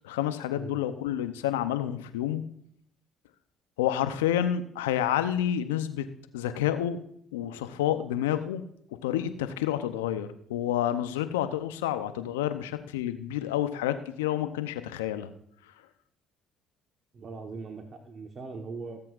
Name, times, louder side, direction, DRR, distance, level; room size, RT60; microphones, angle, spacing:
voice 1, 0.0-2.5 3.8-6.1 6.3-7.0 7.3-8.7 9.0-15.3, left 11 dB, 85° left, 10 dB, 0.6 m, -29 dB
voice 2, 17.1-19.0, right 4 dB, 45° right, 4 dB, 1.1 m, -40 dB
17.0 x 7.7 x 2.5 m, 0.67 s
hypercardioid pair, 55°, 0 cm